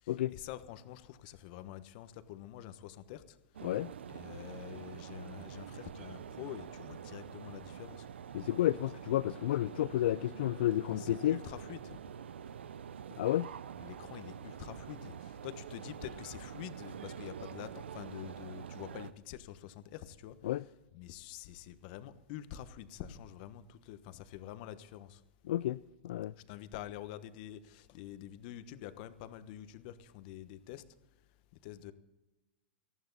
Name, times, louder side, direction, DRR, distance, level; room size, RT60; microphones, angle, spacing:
voice 1, 0.0-3.4 4.1-8.1 11.0-12.0 13.8-20.4 20.9-25.2 26.5-30.8 31.6-31.9, left 12 dB, 55° left, 1.2 m, -47 dB
sound 1, 3.5-19.1, right 8 dB, 85° right, 0.6 m, -46 dB
voice 2, 8.3-11.4 13.2-13.5 20.4-20.6 25.5-25.8 26.0-26.3, left 13 dB, 70° left, 0.4 m, -31 dB
18.5 x 14.5 x 4.1 m
hypercardioid pair, 120°, 6 cm